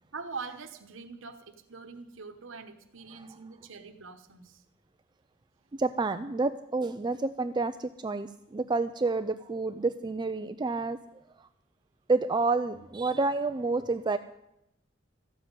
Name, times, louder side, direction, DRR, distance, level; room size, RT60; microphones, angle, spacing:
voice 1, 0.1-4.6, right 4 dB, 70° right, 6 dB, 1.1 m, -43 dB
voice 2, 5.8-11.0 12.1-14.2, right 3 dB, 20° right, 9 dB, 0.4 m, -29 dB
13.5 x 7.4 x 9.5 m, 0.84 s
head